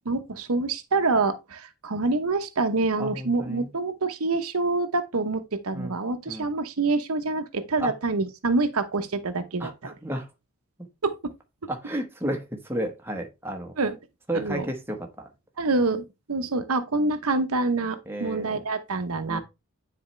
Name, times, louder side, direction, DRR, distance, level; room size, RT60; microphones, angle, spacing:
voice 1, 0.1-9.9 11.0-11.3 13.8-14.0 14.3-14.7 15.6-19.4, right 3 dB, 85° right, 0.9 m, -26 dB
voice 2, 3.0-3.7 5.7-6.0 6.3-6.5 7.8-7.9 9.6-10.3 11.7-13.7 14.3-15.3 18.1-18.6 19.3-19.4, right 1 dB, 10° right, 1.1 m, -32 dB
9.6 x 4.3 x 3.2 m
head